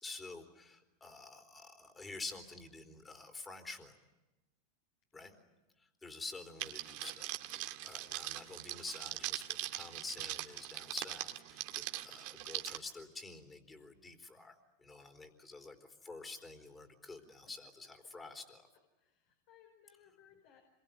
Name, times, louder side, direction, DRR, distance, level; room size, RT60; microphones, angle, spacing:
voice 1, 0.0-3.9 5.1-5.3 5.8-18.7 19.9-20.0, left 3 dB, 15° left, 6 dB, 4.0 m, -49 dB
Crackle, 6.6-12.8, right 16 dB, 60° right, 1.8 m, -41 dB
voice 2, 19.0-20.6, left 9 dB, 60° left, 3 dB, 5.1 m, -64 dB
26.5 x 23.0 x 9.3 m, 1.1 s
hypercardioid pair, 110°, 0 cm